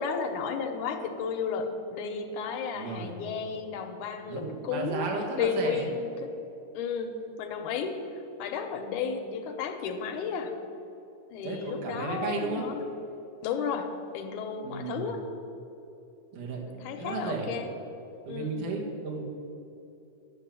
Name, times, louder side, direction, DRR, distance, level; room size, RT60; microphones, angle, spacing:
voice 1, 0.0-5.1 5.4-6.3 6.7-7.1 7.4-7.9 8.4-10.5 11.3-12.8 13.4-13.9 14.1-15.2 16.6-17.7 18.3-18.6, left 6 dB, 80° left, 5 dB, 2.4 m, -33 dB
voice 2, 2.7-3.1 4.3-5.9 11.4-12.6 14.6-15.1 16.3-16.6 17.0-17.5 18.3-19.2, right 4 dB, 90° right, -1 dB, 3.2 m, -34 dB
11.0 x 7.0 x 9.0 m, 2.9 s
omnidirectional pair, 3.5 m